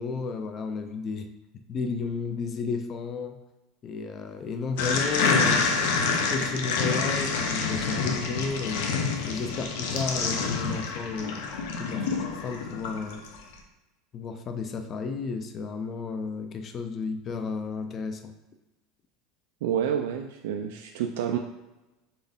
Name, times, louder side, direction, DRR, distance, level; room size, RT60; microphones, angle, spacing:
voice 1, 0.0-1.3 1.7-3.4 3.8-5.7 6.3-11.4 11.8-13.2 14.1-18.3, left 4 dB, 25° left, 6 dB, 0.3 m, -33 dB
sound 1, 4.8-13.4, left 4 dB, 75° left, 0.7 m, -27 dB
voice 2, 19.6-21.4, right 9 dB, 85° right, 3 dB, 0.3 m, -28 dB
4.1 x 3.5 x 3.5 m, 1.0 s
supercardioid pair, 160°, 0 cm